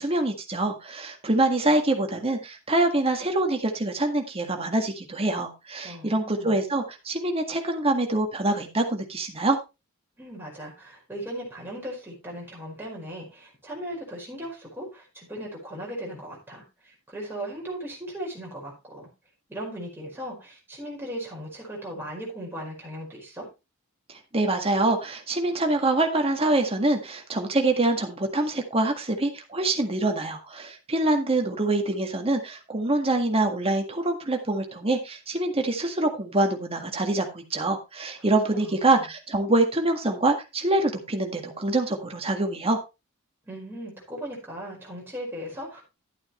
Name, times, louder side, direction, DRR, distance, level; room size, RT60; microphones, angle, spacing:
voice 1, 0.0-9.6 24.1-42.8, right 2 dB, 30° right, 4 dB, 1.8 m, -25 dB
voice 2, 5.8-6.6 10.2-19.1 19.5-23.5 38.5-39.1 43.4-45.8, equal, 10° right, -3 dB, 5.0 m, -37 dB
12.0 x 8.6 x 3.2 m, 0.26 s
head